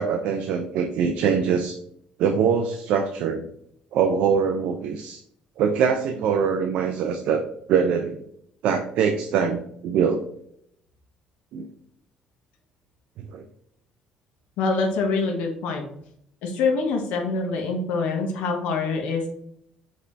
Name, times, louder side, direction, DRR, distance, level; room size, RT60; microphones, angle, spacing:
voice 1, 0.0-1.8 2.2-3.4 3.9-5.2 5.6-7.4 7.7-8.2 8.6-10.2 11.5-11.7 13.2-13.4, right 6 dB, 60° right, 5 dB, 0.4 m, -23 dB
voice 2, 14.6-15.8 16.4-19.3, left 4 dB, 75° left, 2 dB, 0.8 m, -25 dB
5.2 x 2.7 x 3.2 m, 0.70 s
cardioid pair, 175°, 2 cm